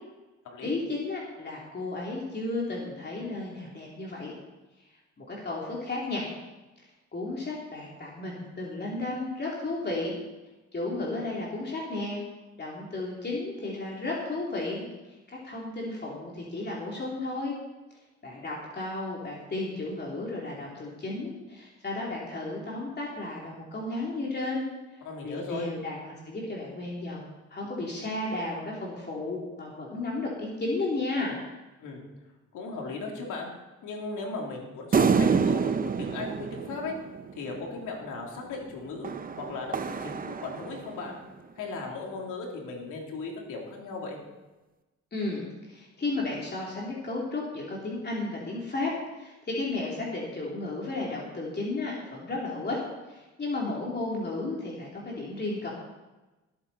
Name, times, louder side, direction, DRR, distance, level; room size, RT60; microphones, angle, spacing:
voice 1, 0.6-4.3 5.2-6.3 7.1-10.2 10.7-12.2 12.6-17.6 18.2-24.6 25.2-31.4 45.1-52.8 53.1-55.7, left 2 dB, 35° left, -4 dB, 3.0 m, -33 dB
voice 2, 25.0-25.7 31.8-32.0 32.5-33.5 33.8-37.0 37.4-39.1 39.4-41.2 41.5-44.2, left 3 dB, 85° left, 0 dB, 3.2 m, -37 dB
sound 1, 34.9-37.6 39.0-41.1, right 5 dB, 30° right, 0.7 m, -27 dB
19.0 x 8.8 x 4.1 m, 1.1 s
cardioid pair, 90°, 30 cm